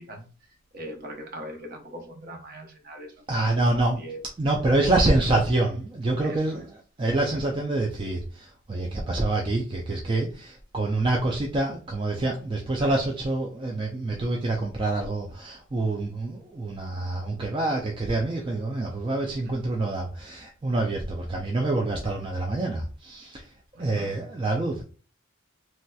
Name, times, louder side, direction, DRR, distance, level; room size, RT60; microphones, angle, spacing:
voice 1, 0.0-3.2 3.6-4.2 4.7-4.9 5.2-5.3 6.2-6.7 19.4-19.6 23.7-24.3, equal, 45° right, 0.7 m, -41 dB
voice 2, 3.3-4.0 4.4-6.6 7.0-23.5 23.8-24.8, right 2 dB, 25° right, 0.3 m, -26 dB
3.1 x 2.8 x 2.2 m
head